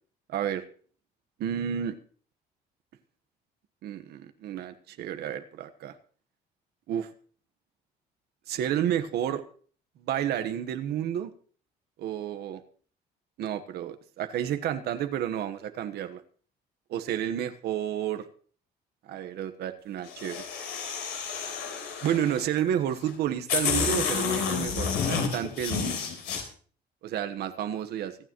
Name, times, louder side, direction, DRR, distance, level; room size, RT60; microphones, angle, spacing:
voice 1, 0.3-0.6 1.4-2.0 3.8-5.9 6.9-7.1 8.5-9.4 10.0-11.3 12.0-12.6 13.4-16.2 16.9-18.3 19.1-20.4 22.0-26.0 27.0-28.2, right 10 dB, 70° right, 8 dB, 1.3 m, -31 dB
sound 1, 20.1-22.4 23.1-23.2 23.5-26.4, left 6 dB, 75° left, 4.0 m, -30 dB
25.5 x 9.1 x 3.1 m, 0.43 s
cardioid pair, 110°, 17 cm